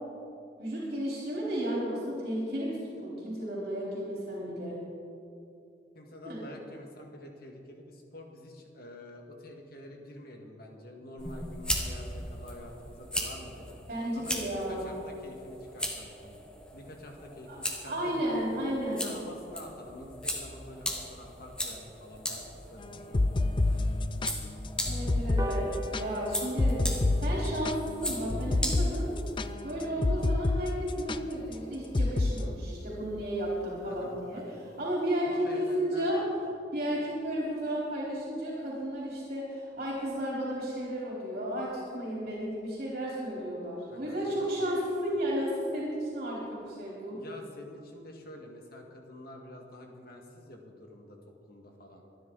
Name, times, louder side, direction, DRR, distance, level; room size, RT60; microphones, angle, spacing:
voice 1, 0.6-4.8 6.2-6.4 13.9-14.9 17.5-17.6 17.9-19.1 24.8-29.2 29.6-36.2 36.7-47.2, equal, 55° right, -5 dB, 4.1 m, -33 dB
voice 2, 5.9-13.8 14.1-16.4 16.7-18.3 18.9-24.2 27.3-27.5 29.9-30.3 33.8-34.7 35.2-36.4 36.9-37.0 43.9-44.7 47.1-51.2 51.5-52.0, left 1 dB, 60° left, 2 dB, 2.0 m, -48 dB
sound 1, 11.2-29.5, equal, 5° left, 1.4 m, -38 dB
sound 2, 22.9-30.6 30.9-31.2 31.9-32.3, left 2 dB, 30° left, 0.4 m, -28 dB
sound 3, 25.4-32.1 32.5-32.6 33.0-33.1 33.3-33.4 33.7-33.8 34.1-34.4 34.8-34.9, right 2 dB, 20° right, 1.0 m, -44 dB
24.5 x 10.5 x 4.1 m, 2.6 s
head